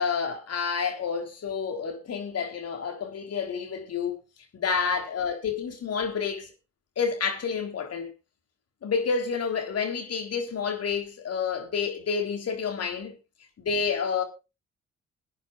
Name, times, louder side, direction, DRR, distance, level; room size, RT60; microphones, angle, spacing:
voice 1, 0.0-4.2 4.5-6.5 7.0-8.1 8.8-13.2 13.6-14.2, left 6 dB, 55° left, 3.7 m, -29 dB
22.0 x 9.4 x 2.5 m
hypercardioid pair, 45°, 30 cm